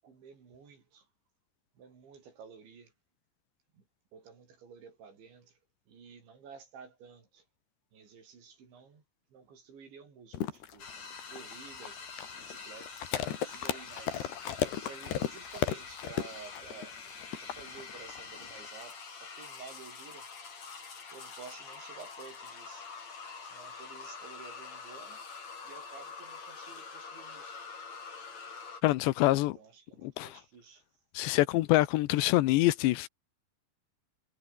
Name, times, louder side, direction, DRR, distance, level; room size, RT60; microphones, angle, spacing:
voice 1, 0.0-1.1 1.7-2.9 3.7-3.9 4.1-5.6 5.9-7.5 7.9-9.0 9.3-10.9 11.3-12.0 12.4-13.1 13.4-17.0 17.4-20.3 21.1-22.9 23.4-25.2 25.6-27.5 29.5-30.9, right 6 dB, 85° right, 8.1 m, -52 dB
Dog Eating Milk-bone, 10.3-18.7, left 10 dB, 70° left, 4.2 m, -35 dB
sound 1, 10.8-28.8, left 5 dB, 40° left, 5.1 m, -46 dB
voice 2, 28.8-29.6 30.0-30.3 31.2-33.1, left 17 dB, 85° left, 3.1 m, -25 dB
omnidirectional pair, 5.1 m